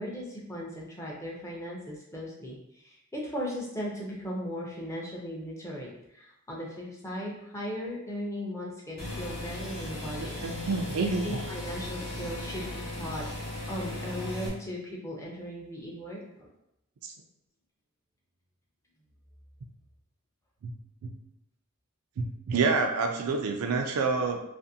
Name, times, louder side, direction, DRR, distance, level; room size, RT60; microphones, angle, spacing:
voice 1, 0.0-10.7 11.0-13.2 13.7-16.5, equal, 15° left, -3 dB, 0.5 m, -37 dB
sound 1, 9.0-14.5, left 1 dB, 60° left, 0.9 m, -37 dB
voice 2, 10.1-11.2 12.1-12.2 17.0-17.1 20.6-20.7 21.0-21.1 22.2-24.4, right 4 dB, 80° right, 4 dB, 0.4 m, -28 dB
2.5 x 2.5 x 2.6 m, 0.83 s
head